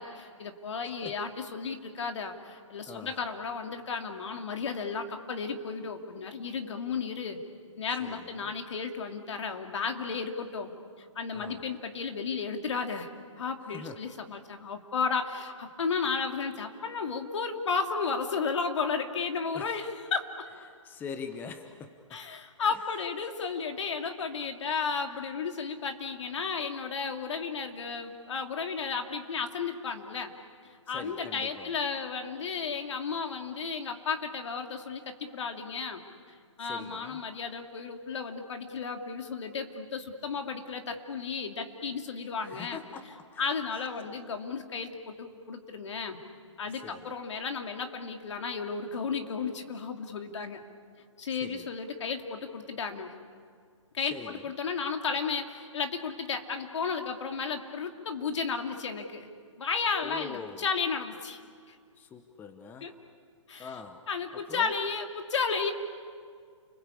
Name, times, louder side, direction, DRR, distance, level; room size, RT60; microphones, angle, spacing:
voice 1, 0.0-7.4 7.8-10.7 11.0-13.1 13.4-20.3 22.1-30.3 30.6-36.0 36.6-42.8 43.4-46.2 46.6-50.6 51.2-53.1 53.9-59.3 59.6-61.4 61.7-61.8 62.8-62.9 63.5-63.7 64.1-65.7, left 5 dB, 65° left, 5 dB, 2.8 m, -33 dB
voice 2, 2.9-3.2 8.0-8.5 11.3-11.6 13.6-14.1 19.5-19.8 20.7-22.2 22.7-22.8 30.9-31.7 36.6-37.2 42.4-43.4 46.7-47.1 51.3-51.7 54.1-54.3 60.0-60.6 62.0-63.0 63.6-64.7, left 5 dB, 10° left, 8 dB, 0.9 m, -44 dB
30.0 x 21.5 x 8.5 m, 2.1 s
hypercardioid pair, 150°, 16 cm